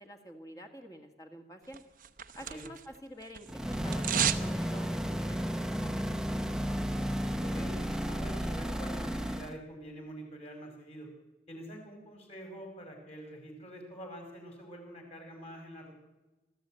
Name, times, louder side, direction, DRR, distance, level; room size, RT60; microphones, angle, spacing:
voice 1, 0.0-1.8 2.4-6.0, equal, 20° left, 3 dB, 2.0 m, -48 dB
sound 1, 1.7-3.0 3.2-4.5 4.8-4.9, right 9 dB, 50° right, 0.9 m, -32 dB
sound 2, 3.5-9.6, equal, 5° right, 0.9 m, -33 dB
voice 2, 7.4-11.1 11.5-16.0, equal, 35° left, 3 dB, 5.3 m, -46 dB
24.5 x 14.0 x 9.0 m, 1.1 s
head